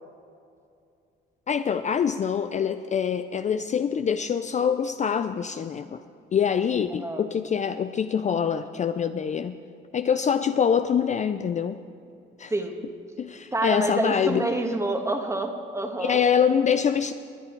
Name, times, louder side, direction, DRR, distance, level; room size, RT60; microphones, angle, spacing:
voice 1, 1.5-6.0 6.3-9.6 9.9-11.8 12.4-12.5 13.2-14.4 16.0-17.1, left 7 dB, 35° left, 10 dB, 0.4 m, -25 dB
voice 2, 6.9-7.3 12.5-12.7 13.5-16.2, right 2 dB, 15° right, 4 dB, 1.5 m, -27 dB
20.5 x 8.8 x 4.5 m, 2.5 s
cardioid pair, 90°, 20 cm